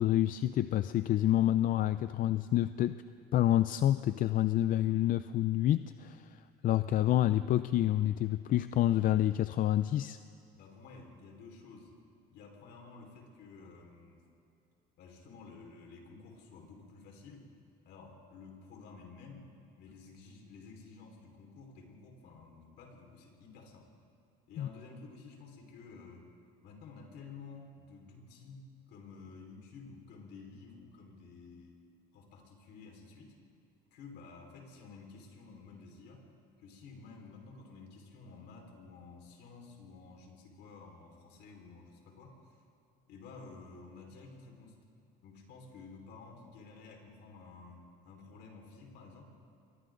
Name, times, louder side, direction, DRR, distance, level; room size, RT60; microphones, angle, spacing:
voice 1, 0.0-3.0 3.3-10.2 24.6-24.7, left 13 dB, 50° left, 12 dB, 0.5 m, -28 dB
voice 2, 10.5-11.9 12.3-14.2 15.0-17.5 17.8-19.5 19.8-23.9 24.5-26.3 26.6-31.8 32.1-33.3 33.9-36.2 36.6-42.4 43.1-44.8 45.2-49.2, left 4 dB, 70° left, 1 dB, 4.8 m, -52 dB
29.0 x 23.5 x 3.9 m, 2.5 s
cardioid pair, 125°, 18 cm